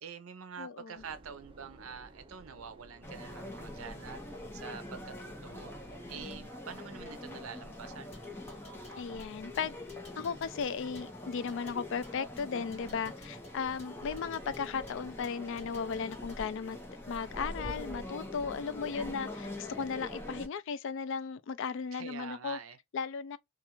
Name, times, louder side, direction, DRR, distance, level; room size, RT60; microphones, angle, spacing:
voice 1, 0.0-4.2 4.5-5.7 6.1-8.1 21.9-22.8, right 6 dB, 80° right, 0.6 m, -46 dB
voice 2, 0.6-1.0 9.0-9.8 10.2-16.8 17.1-22.6 22.9-23.4, left 6 dB, 60° left, 0.3 m, -36 dB
Subway metro underground, 1.0-6.4, right 2 dB, 25° right, 0.5 m, -55 dB
sound 1, 3.0-20.5, left 1 dB, 10° left, 0.8 m, -44 dB
sound 2, 8.0-16.5, left 1 dB, 30° left, 1.2 m, -57 dB
2.4 x 2.4 x 2.8 m
head